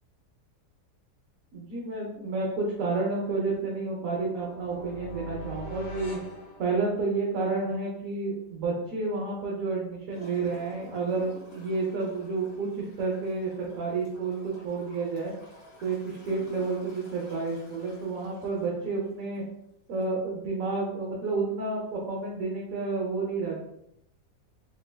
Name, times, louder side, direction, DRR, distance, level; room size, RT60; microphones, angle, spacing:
voice 1, 1.5-6.2 6.6-15.3 15.8-19.4 19.9-23.6, right 3 dB, 65° right, -3 dB, 0.9 m, -30 dB
sound 1, 4.2-7.3, equal, 80° left, 1.8 m, -41 dB
Gurgling / Toilet flush, 10.1-19.5 20.0-20.1, left 2 dB, 50° left, 1.6 m, -52 dB
3.9 x 3.3 x 2.2 m, 0.81 s
omnidirectional pair, 1.9 m